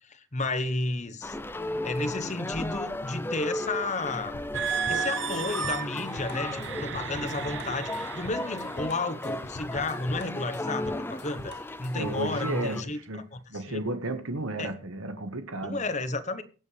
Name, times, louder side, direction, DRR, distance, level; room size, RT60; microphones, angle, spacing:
voice 1, 0.0-1.4 1.8-4.3 4.9-13.8 14.6-14.7 15.6-16.4, left 2 dB, 35° left, 1.1 m, -32 dB
sound 1, 1.2-12.8, left 1 dB, 10° left, 0.5 m, -35 dB
sound 2, 4.3-12.3, left 2 dB, 55° left, 0.8 m, -45 dB
sound 3, 4.5-9.1 9.7-10.0 10.6-10.9, right 8 dB, 60° right, 0.6 m, -35 dB
voice 2, 11.9-15.8, right 2 dB, 85° right, 1.4 m, -33 dB
23.5 x 7.9 x 3.3 m
head